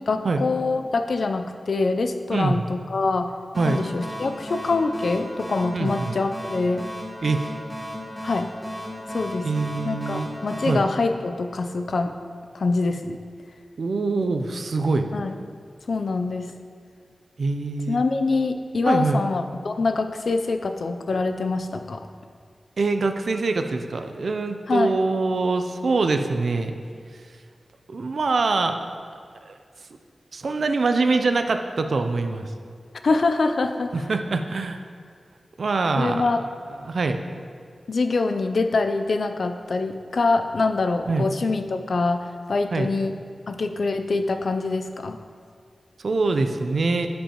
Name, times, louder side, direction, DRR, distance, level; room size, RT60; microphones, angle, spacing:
voice 1, 0.0-3.3 3.7-6.9 8.2-8.5 9.1-9.5 9.8-12.1 12.5-13.2 15.1-15.4 15.9-16.5 17.9-22.1 24.7-25.0 33.0-33.9 36.0-36.4 37.9-43.2 43.5-45.2, left 3 dB, 65° left, 7 dB, 0.4 m, -24 dB
voice 2, 2.3-2.6 3.6-3.8 5.7-6.1 7.2-7.4 9.4-10.3 10.7-10.8 13.8-15.1 17.4-18.0 18.9-19.2 22.8-26.7 27.9-28.8 29.4-29.5 30.3-32.5 33.9-34.8 35.6-36.3 36.8-37.2 41.1-41.3 42.7-42.9 46.0-47.1, right 3 dB, 70° right, 7 dB, 0.5 m, -24 dB
sound 1, 3.5-11.9, equal, ahead, 1.6 m, -35 dB
11.5 x 5.2 x 3.0 m, 2.1 s
wide cardioid pair, 115°, 0 cm